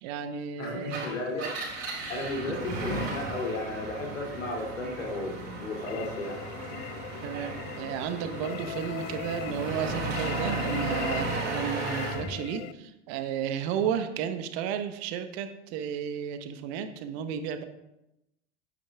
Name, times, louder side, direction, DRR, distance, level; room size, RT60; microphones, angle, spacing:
voice 1, 0.0-1.0 7.2-17.6, right 8 dB, 55° right, 9 dB, 1.1 m, -33 dB
voice 2, 0.6-1.6 2.1-6.4, left 2 dB, 85° left, 0 dB, 2.6 m, -34 dB
Engine, 0.8-12.3, right 2 dB, 80° right, 3.4 m, -35 dB
sound 1, 5.9-12.7, left 13 dB, 60° left, 0.5 m, -40 dB
9.2 x 8.7 x 3.5 m, 0.89 s
hypercardioid pair, 85°, 37 cm